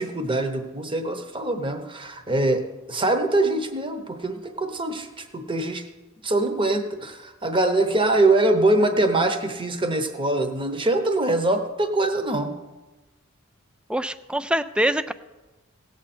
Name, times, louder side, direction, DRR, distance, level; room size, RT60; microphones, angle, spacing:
voice 1, 0.0-2.6 2.9-5.9 6.2-12.5, right 2 dB, 25° right, 7 dB, 1.0 m, -23 dB
voice 2, 13.9-15.1, right 1 dB, 5° right, 12 dB, 0.3 m, -24 dB
17.5 x 7.9 x 4.3 m, 1.1 s
head